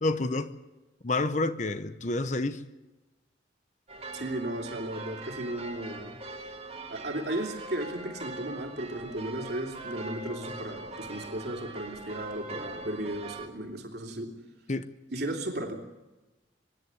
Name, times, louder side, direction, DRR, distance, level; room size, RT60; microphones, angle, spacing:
voice 1, 0.0-0.5 1.0-2.6 14.7-14.8, left 2 dB, 40° left, 0.8 m, -28 dB
sound 1, 3.9-13.5, right 2 dB, 30° right, 1.8 m, -42 dB
voice 2, 4.1-6.2 6.9-14.3 15.1-15.7, right 1 dB, 55° right, 3.1 m, -35 dB
24.5 x 11.0 x 9.6 m
head